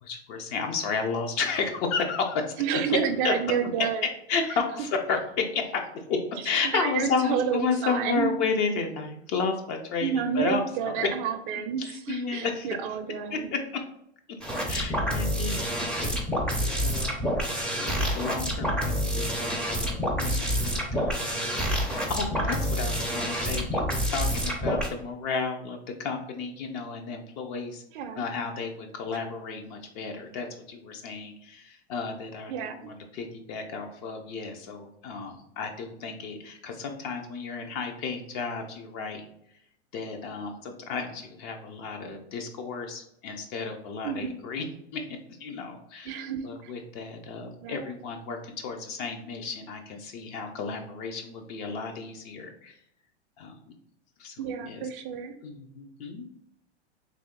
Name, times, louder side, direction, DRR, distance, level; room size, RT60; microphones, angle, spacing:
voice 1, 0.0-2.6 3.2-3.3 4.3-11.1 11.8-12.7 13.3-13.8 14.7-17.1 17.8-21.5 21.9-27.8 28.1-39.2 39.9-44.6 44.9-52.7 53.4-53.7 54.2-54.8 55.4-56.3, left 5 dB, 45° left, 4 dB, 0.7 m, -32 dB
voice 2, 2.6-4.0 6.6-8.3 10.0-11.8 12.1-13.5 27.9-28.2 32.5-32.9 44.0-44.2 46.1-46.7 47.6-48.0 54.4-55.3, right 7 dB, 50° right, 7 dB, 0.6 m, -30 dB
sound 1, 14.4-24.9, equal, 5° left, 0.5 m, -28 dB
3.4 x 2.8 x 3.7 m, 0.75 s
hypercardioid pair, 120°, 34 cm